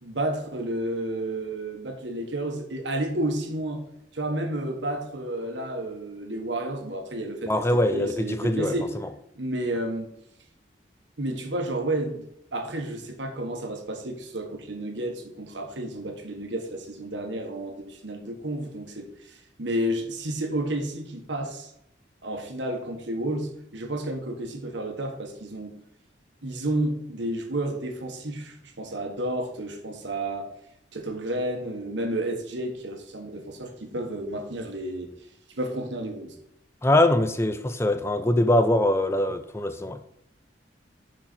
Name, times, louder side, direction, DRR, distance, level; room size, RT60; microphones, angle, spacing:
voice 1, 0.0-3.8 4.1-8.9 9.3-10.1 11.2-12.2 12.5-21.7 22.2-25.8 26.4-30.5 30.9-35.1 35.5-36.3, right 1 dB, 70° right, 1.4 m, -31 dB
voice 2, 7.5-9.1 36.8-40.0, left 1 dB, 15° left, 0.5 m, -23 dB
6.5 x 6.0 x 4.2 m
head